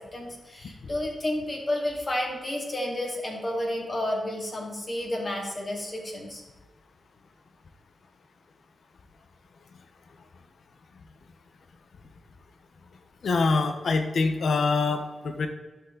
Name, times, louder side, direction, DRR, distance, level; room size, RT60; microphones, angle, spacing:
voice 1, 0.1-6.4, left 1 dB, 40° left, -1 dB, 2.6 m, -31 dB
voice 2, 13.2-15.5, left 4 dB, 70° left, 7 dB, 1.0 m, -24 dB
12.0 x 5.8 x 3.9 m, 1.2 s
cardioid pair, 70°, 0 cm